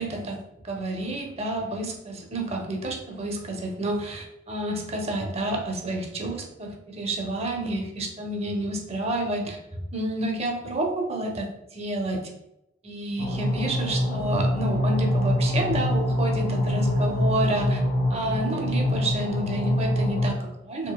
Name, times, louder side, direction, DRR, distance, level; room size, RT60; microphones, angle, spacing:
voice 1, 0.0-12.2 12.8-17.8 18.1-20.9, right 1 dB, 35° right, 2 dB, 0.6 m, -30 dB
sound 1, 13.2-20.3, left 1 dB, 60° left, 0.8 m, -25 dB
4.3 x 2.7 x 2.2 m, 0.85 s
head